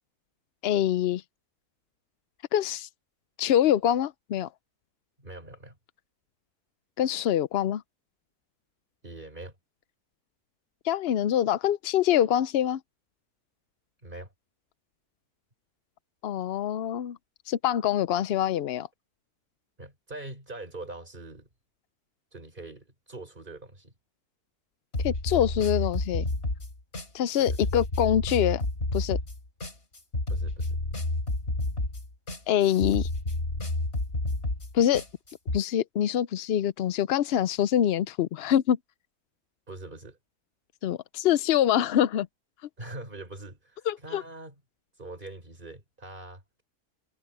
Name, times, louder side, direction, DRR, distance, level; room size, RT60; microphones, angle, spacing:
voice 1, 0.6-1.2 2.5-2.9 3.4-4.5 7.0-7.8 10.8-12.8 16.2-17.2 17.5-18.9 25.0-26.2 27.1-28.6 28.9-29.2 32.5-33.1 34.7-35.0 35.5-38.8 40.8-42.3 43.9-44.2, left 10 dB, 75° left, 0.5 m, -25 dB
voice 2, 5.2-5.8 9.0-9.5 14.0-14.3 19.8-21.5 22.3-23.9 27.4-27.6 30.3-30.8 39.7-40.2 42.8-44.5 45.0-46.4, right 2 dB, 30° right, 5.9 m, -43 dB
sound 1, 24.9-35.6, left 2 dB, 40° left, 4.2 m, -30 dB
omnidirectional pair, 1.6 m